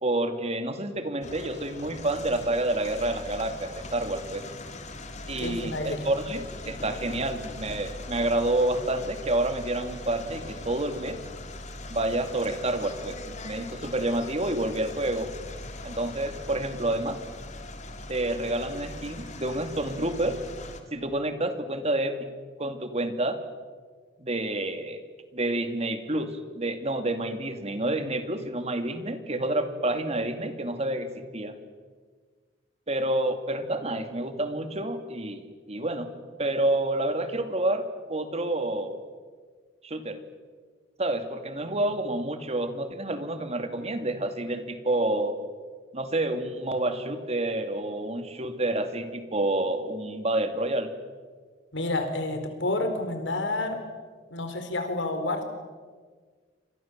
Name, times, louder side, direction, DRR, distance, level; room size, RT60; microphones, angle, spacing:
voice 1, 0.0-4.4 5.3-11.2 11.9-13.2 13.4-15.3 15.8-17.2 18.1-20.4 20.9-22.3 22.6-23.4 24.2-25.0 25.3-31.6 32.9-36.1 36.4-39.0 39.8-40.2 41.0-45.4 45.9-50.9, right 1 dB, 35° right, 8 dB, 2.5 m, -29 dB
sound 1, 1.2-20.8, left 2 dB, 40° left, 2.5 m, -41 dB
voice 2, 5.4-6.0 51.7-53.8 54.3-55.4, left 2 dB, 85° left, 7 dB, 4.5 m, -29 dB
28.5 x 26.0 x 7.5 m, 1.5 s
head